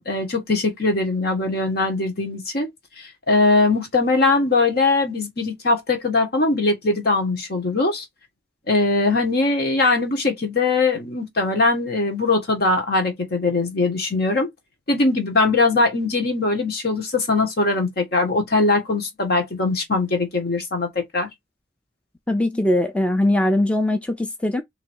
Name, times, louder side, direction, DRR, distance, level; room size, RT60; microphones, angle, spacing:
voice 1, 0.0-2.7 3.0-8.0 8.7-14.5 14.9-21.3, left 3 dB, 60° left, 1.4 m, -21 dB
voice 2, 22.3-24.6, left 1 dB, 5° left, 0.5 m, -21 dB
3.7 x 3.0 x 4.4 m
head